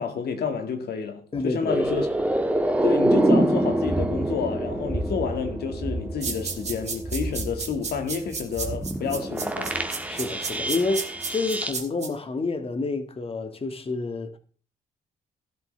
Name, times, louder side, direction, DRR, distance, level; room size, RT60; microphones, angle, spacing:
voice 1, 0.0-2.1 2.8-9.8, left 6 dB, 70° left, 1.8 m, -29 dB
voice 2, 1.3-1.8 10.1-14.4, left 3 dB, 35° left, 1.8 m, -29 dB
sound 1, 1.7-11.7, right 1 dB, 10° right, 1.6 m, -26 dB
sound 2, 6.2-12.1, right 5 dB, 40° right, 2.8 m, -32 dB
14.0 x 12.0 x 3.3 m
cardioid pair, 100°, 17 cm